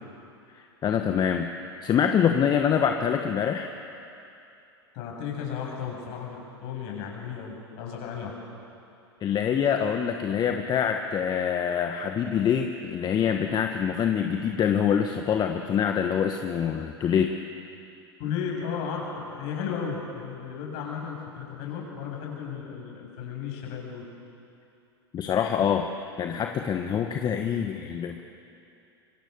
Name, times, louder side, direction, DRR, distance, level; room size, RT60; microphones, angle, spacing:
voice 1, 0.5-1.5 1.8-3.7 9.2-17.3 25.1-25.9 26.2-28.2, left 8 dB, 30° left, 5 dB, 1.3 m, -25 dB
voice 2, 4.9-8.3 18.2-24.0, left 7 dB, 50° left, -1 dB, 7.7 m, -34 dB
27.0 x 23.5 x 6.9 m, 2.7 s
figure-of-eight pair, 90°, 14 cm